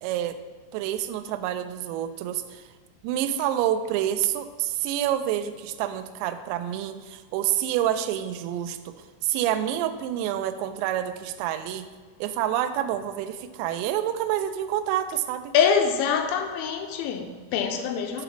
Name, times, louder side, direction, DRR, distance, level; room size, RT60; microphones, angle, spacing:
voice 1, 0.0-0.4 0.7-2.6 3.0-8.9 9.2-11.9 12.2-15.5, right 11 dB, 85° right, 2.6 m, -28 dB
voice 2, 15.5-18.2, left 7 dB, 80° left, 3.0 m, -24 dB
11.0 x 4.1 x 5.7 m
omnidirectional pair, 5.7 m